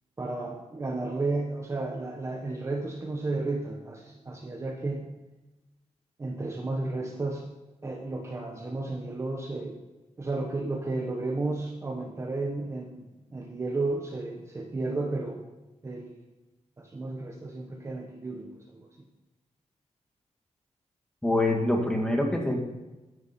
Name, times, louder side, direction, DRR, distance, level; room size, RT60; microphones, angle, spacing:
voice 1, 0.2-5.0 6.2-7.4 7.8-9.8 10.2-13.0 13.3-15.4 15.8-16.2 16.8-18.9, right 2 dB, 25° right, 2 dB, 1.2 m, -33 dB
voice 2, 21.2-22.6, left 1 dB, 5° left, 1 dB, 1.9 m, -25 dB
13.5 x 11.0 x 4.4 m, 1.1 s
wide cardioid pair, 180°, 12 cm